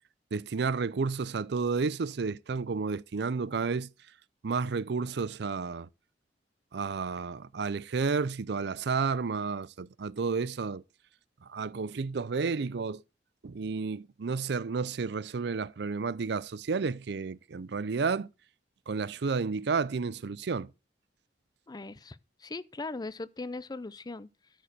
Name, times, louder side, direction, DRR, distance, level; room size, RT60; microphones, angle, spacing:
voice 1, 0.3-3.9 4.4-5.9 6.7-10.8 11.5-13.0 13.4-18.3 18.9-20.7, right 4 dB, 70° right, 0.5 m, -31 dB
voice 2, 21.7-24.3, left 3 dB, 25° left, 0.5 m, -39 dB
12.5 x 4.8 x 6.7 m
head